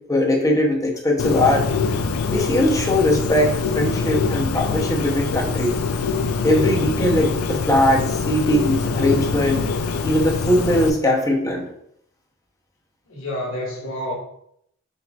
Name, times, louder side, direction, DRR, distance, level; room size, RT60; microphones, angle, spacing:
voice 1, 0.1-1.7 2.3-5.7 6.4-9.6 10.0-11.6, left 1 dB, 15° left, 0 dB, 0.7 m, -20 dB
Bird, 1.2-10.9, left 5 dB, 90° left, 0.4 m, -24 dB
voice 2, 13.1-14.1, left 1 dB, 65° left, -3 dB, 1.4 m, -29 dB
4.4 x 4.0 x 2.3 m, 0.72 s
head